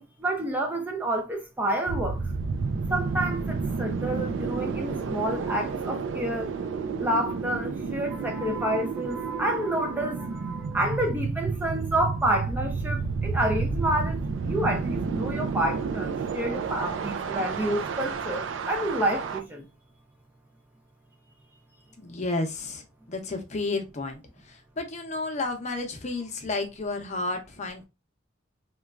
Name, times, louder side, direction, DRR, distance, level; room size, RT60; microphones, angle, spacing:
voice 1, 0.0-2.2 2.9-6.5 7.0-19.6, right 1 dB, 10° right, 0.4 m, -29 dB
sound 1, 1.9-19.4, right 4 dB, 80° right, 0.4 m, -31 dB
voice 2, 22.0-22.8 23.1-24.2 24.8-27.9, left 2 dB, 40° left, 0.6 m, -31 dB
3.0 x 2.2 x 2.3 m
head